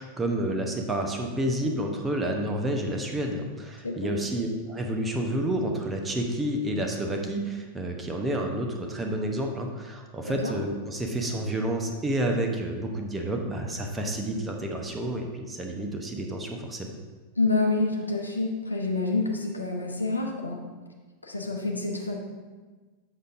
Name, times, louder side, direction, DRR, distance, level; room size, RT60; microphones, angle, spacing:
voice 1, 0.0-16.9, right 1 dB, 15° right, 2 dB, 0.8 m, -29 dB
voice 2, 17.4-20.6 21.2-22.2, left 3 dB, 80° left, 2 dB, 0.8 m, -27 dB
7.4 x 6.6 x 2.6 m, 1.3 s
figure-of-eight pair, 90°, 0 cm